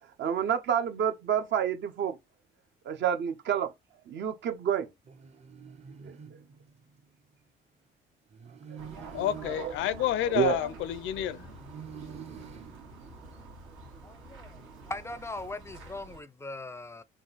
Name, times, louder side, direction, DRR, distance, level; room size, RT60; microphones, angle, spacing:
voice 1, 0.2-2.2 2.8-3.7 4.1-4.9 6.0-6.2 8.9-9.2 9.4-9.7 10.3-10.6, right 8 dB, 65° right, 0.8 m, -29 dB
sound 1, 5.0-7.2 8.3-11.0 11.5-13.8, right 7 dB, 35° right, 0.6 m, -48 dB
sound 2, 8.8-16.2, right 3 dB, 90° right, 1.7 m, -48 dB
voice 2, 9.1-11.4, left 11 dB, 75° left, 0.5 m, -29 dB
voice 3, 14.0-17.0, left 2 dB, 15° left, 0.4 m, -40 dB
3.7 x 2.4 x 4.0 m
cardioid pair, 100°, 20 cm